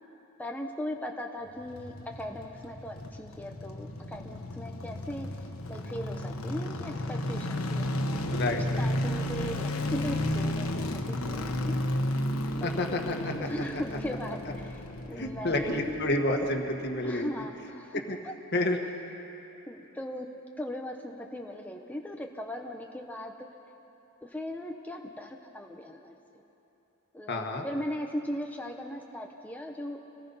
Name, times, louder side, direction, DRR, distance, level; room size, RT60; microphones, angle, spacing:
voice 1, 0.4-5.3 5.7-8.2 8.5-11.8 12.6-12.7 13.4-15.8 17.0-18.3 19.7-20.3 20.6-23.3 24.2-26.1 27.1-30.0, left 1 dB, 10° left, 2 dB, 0.9 m, -38 dB
sound 1, 1.5-16.7 16.9-17.0, left 1 dB, 80° left, 1.5 m, -33 dB
voice 2, 8.3-8.9 12.6-13.3 13.7-13.8 14.3-14.4 15.2-17.3 17.9-18.2 18.5-18.8 27.3-27.6, left 1 dB, 50° left, 3 dB, 1.7 m, -29 dB
27.0 x 18.0 x 5.6 m, 3.0 s
head